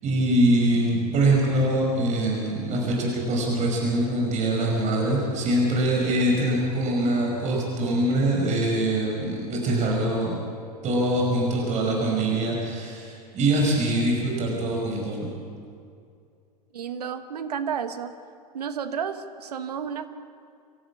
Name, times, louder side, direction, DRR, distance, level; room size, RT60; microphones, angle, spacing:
voice 1, 0.0-10.4 10.8-15.2, right 1 dB, 35° right, -1 dB, 5.5 m, -23 dB
voice 2, 16.7-18.1 18.5-20.1, right 7 dB, 75° right, 10 dB, 1.4 m, -31 dB
26.0 x 13.5 x 8.4 m, 2.3 s
figure-of-eight pair, 85°, 20 cm